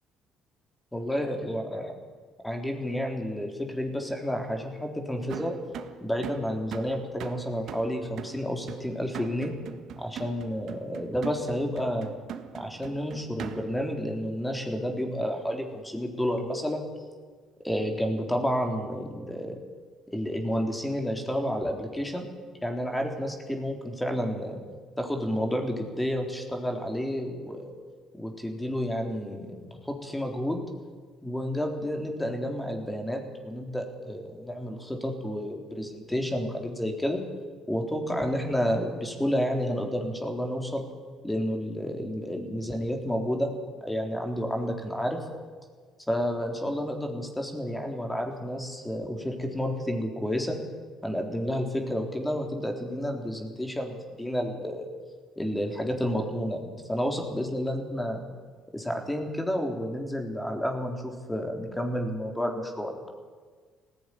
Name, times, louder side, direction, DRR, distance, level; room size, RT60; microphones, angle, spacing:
voice 1, 0.9-1.8 2.4-5.6 6.0-9.5 10.0-12.1 12.5-16.8 17.6-19.6 20.1-22.3 22.6-24.6 25.0-27.7 28.1-30.7 31.2-37.2 37.7-40.9 41.2-43.5 43.8-45.2 46.1-50.6 51.0-54.9 55.4-58.3 58.7-63.0, equal, 10° left, 3 dB, 3.8 m, -30 dB
sound 1, 5.3-13.9, right 9 dB, 70° right, 1.5 m, -41 dB
18.5 x 15.5 x 10.0 m, 1.5 s
cardioid pair, 85°, 0 cm